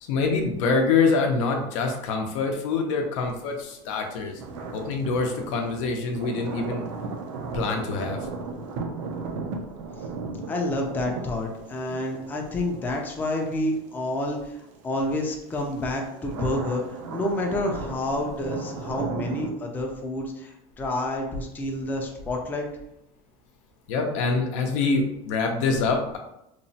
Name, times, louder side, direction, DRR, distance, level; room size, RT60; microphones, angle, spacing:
voice 1, 0.0-4.4 4.7-6.8 7.5-8.3 23.9-26.2, left 4 dB, 90° left, 3 dB, 0.6 m, -25 dB
sound 1, 3.5-15.0 15.5-19.5, right 3 dB, 85° right, 0.5 m, -36 dB
voice 2, 10.5-22.7, left 1 dB, 10° left, 1 dB, 0.3 m, -29 dB
2.9 x 2.0 x 2.7 m, 0.83 s
supercardioid pair, 145°, 16 cm